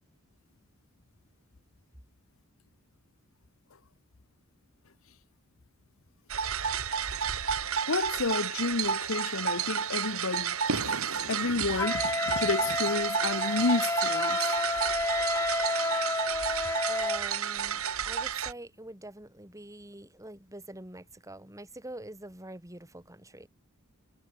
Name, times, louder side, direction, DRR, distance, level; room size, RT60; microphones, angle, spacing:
sound 1, 6.3-18.5, right 7 dB, 85° right, 2.1 m, -31 dB
voice 1, 7.9-14.4, left 3 dB, 70° left, 1.0 m, -31 dB
Wind instrument woodwind instrument, 11.8-17.2, left 2 dB, 15° left, 2.4 m, -30 dB
voice 2, 16.9-23.5, right 1 dB, 15° right, 2.9 m, -45 dB
head